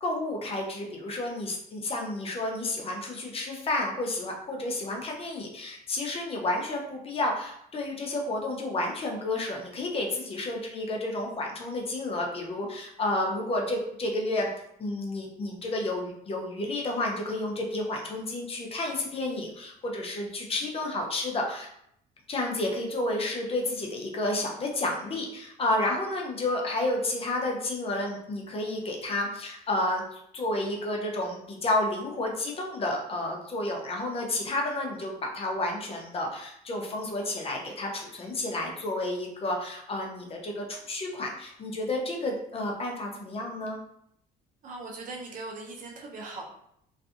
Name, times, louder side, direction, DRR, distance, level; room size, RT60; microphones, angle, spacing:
voice 1, 0.0-14.5 14.8-21.7 22.3-43.8, left 2 dB, 35° left, 0 dB, 0.6 m, -31 dB
voice 2, 44.6-46.4, right 3 dB, 50° right, 0 dB, 0.7 m, -39 dB
2.5 x 2.4 x 2.4 m, 0.73 s
cardioid pair, 110°, 17 cm